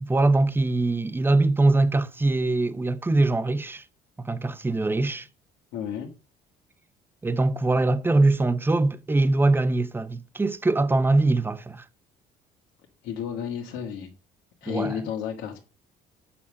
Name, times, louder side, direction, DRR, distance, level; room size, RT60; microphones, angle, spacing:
voice 1, 0.0-3.8 4.2-5.3 7.2-11.8 14.7-15.0, right 2 dB, 15° right, 0.7 m, -22 dB
voice 2, 5.7-6.1 13.0-14.1 14.6-15.6, left 8 dB, 85° left, 1.8 m, -32 dB
8.6 x 5.6 x 6.3 m
cardioid pair, 110°, 17 cm